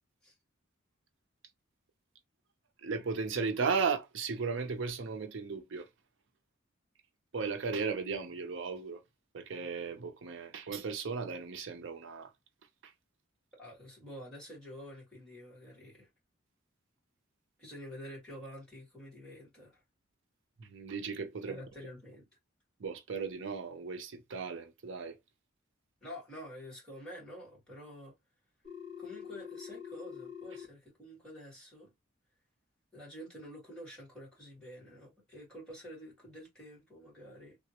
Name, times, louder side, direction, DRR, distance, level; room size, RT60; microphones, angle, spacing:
voice 1, 2.8-5.9 7.3-9.0 9.3-12.3 12.8-12.9 20.6-21.6 22.8-25.2, right 5 dB, 65° right, 0.6 m, -36 dB
voice 2, 13.6-16.1 17.6-19.8 21.5-22.3 26.0-28.2 29.0-31.9 32.9-37.6, equal, 5° left, 1.8 m, -48 dB
Telephone, 28.6-30.6, left 8 dB, 35° left, 1.4 m, -45 dB
3.5 x 2.1 x 2.9 m
head